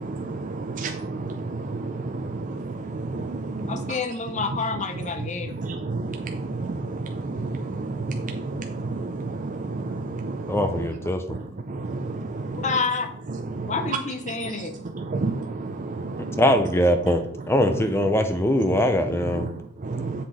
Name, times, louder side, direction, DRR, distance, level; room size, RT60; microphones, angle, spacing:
voice 1, 0.0-4.0 5.2-10.9 11.3-12.7 13.3-14.0 14.4-14.6 14.9-16.4 17.7-17.8 19.3-20.2, right 3 dB, 40° right, 0.5 m, -31 dB
voice 2, 3.7-5.5 12.5-13.1 13.7-14.8, left 4 dB, 35° left, 0.8 m, -28 dB
voice 3, 10.5-11.2 16.4-19.5, equal, 10° left, 0.5 m, -22 dB
7.5 x 5.8 x 4.1 m
head